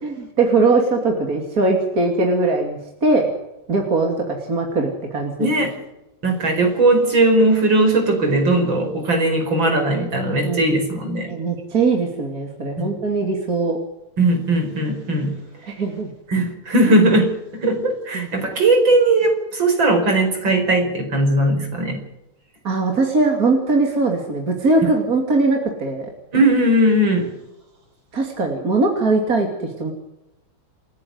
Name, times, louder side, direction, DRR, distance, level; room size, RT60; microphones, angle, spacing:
voice 1, 0.0-3.3 3.7-5.5 10.4-10.8 11.3-13.8 15.7-16.1 18.1-18.3 22.6-26.1 28.1-29.5 29.8-29.9, right 3 dB, 40° right, 2 dB, 3.3 m, -20 dB
voice 2, 5.4-5.7 6.2-11.3 12.8-12.9 14.2-15.4 16.3-22.0 26.3-27.3, right 2 dB, 65° right, 4 dB, 5.8 m, -18 dB
29.0 x 10.5 x 9.7 m, 0.89 s
omnidirectional pair, 2.3 m